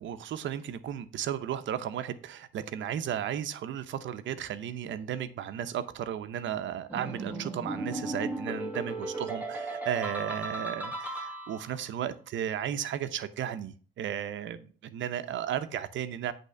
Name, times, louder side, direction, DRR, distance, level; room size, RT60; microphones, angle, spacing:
voice 1, 0.0-16.3, right 10 dB, 70° right, 11 dB, 0.8 m, -34 dB
sound 1, 6.9-11.8, right 2 dB, 10° right, 2.0 m, -36 dB
8.1 x 3.6 x 6.6 m, 0.42 s
cardioid pair, 90°, 20 cm